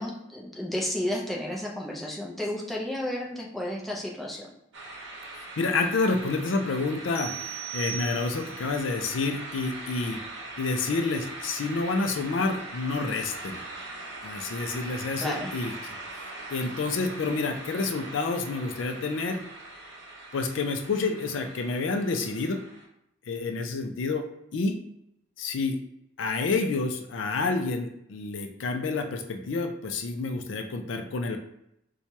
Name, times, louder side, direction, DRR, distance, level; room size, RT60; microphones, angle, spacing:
voice 1, 0.0-4.5 15.2-15.5, left 1 dB, ahead, -4 dB, 0.6 m, -32 dB
sound 1, 4.7-22.8, right 2 dB, 70° right, 0.8 m, -41 dB
voice 2, 5.4-7.3 7.7-10.2 10.6-13.6 14.2-15.7 16.1-19.4 20.3-22.6 23.3-24.2 24.5-24.8 25.4-25.8 26.2-31.4, left 3 dB, 75° left, 6 dB, 0.4 m, -29 dB
sound 2, 7.2-8.7, right 9 dB, 30° left, 0.8 m, -37 dB
4.5 x 2.3 x 2.8 m, 0.79 s
head